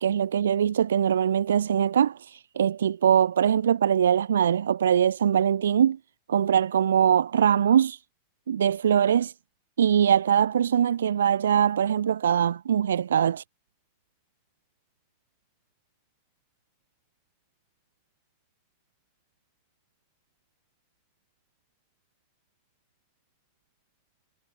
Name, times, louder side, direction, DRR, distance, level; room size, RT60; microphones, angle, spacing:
voice 1, 0.0-6.0 6.3-8.0 8.5-9.3 9.8-13.4, right 9 dB, 65° right, 1.1 m, -22 dB
figure-of-eight pair, 90°, 0 cm